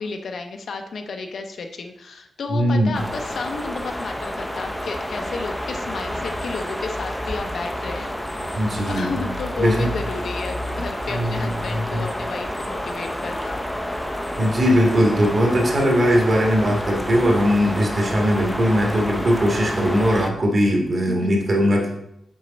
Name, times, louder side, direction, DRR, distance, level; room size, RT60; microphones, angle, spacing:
voice 1, 0.0-13.7 21.1-21.3, left 4 dB, 55° left, 5 dB, 0.6 m, -32 dB
voice 2, 2.5-3.0 8.5-9.3 9.6-9.9 11.1-11.5 11.7-12.0 14.4-21.9, equal, 40° right, 1 dB, 1.5 m, -20 dB
sound 1, 2.9-20.3, equal, 5° left, 0.5 m, -29 dB
6.3 x 5.5 x 3.9 m, 0.76 s
wide cardioid pair, 160°, 0 cm